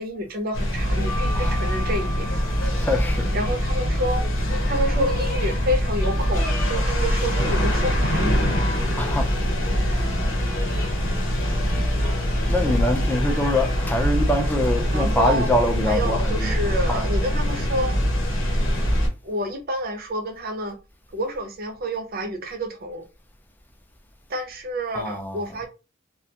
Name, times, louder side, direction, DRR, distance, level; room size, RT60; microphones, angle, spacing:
voice 1, 0.0-2.3 3.3-4.3 4.7-8.7 14.9-15.5 15.9-18.0 19.2-20.8 21.1-23.0 24.3-25.7, right 1 dB, 50° right, 0.6 m, -28 dB
sound 1, 0.5-19.1, equal, 80° left, 0.8 m, -23 dB
sound 2, 0.9-13.9, left 1 dB, 45° left, 0.8 m, -36 dB
voice 2, 2.6-3.4 9.0-9.3 12.5-16.6 16.9-17.1 24.9-25.5, left 1 dB, 10° left, 0.4 m, -24 dB
2.4 x 2.2 x 2.8 m
head